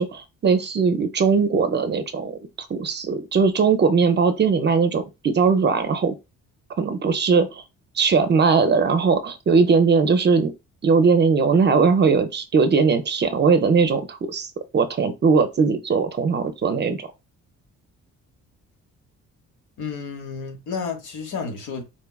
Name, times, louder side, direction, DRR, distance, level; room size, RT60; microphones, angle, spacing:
voice 1, 0.0-2.4 2.7-6.1 6.8-7.6 8.0-10.5 10.8-17.1, right 5 dB, 35° right, 0.5 m, -19 dB
voice 2, 19.8-21.8, left 5 dB, 80° left, 1.0 m, -31 dB
4.2 x 2.2 x 2.3 m
cardioid pair, 90°, 30 cm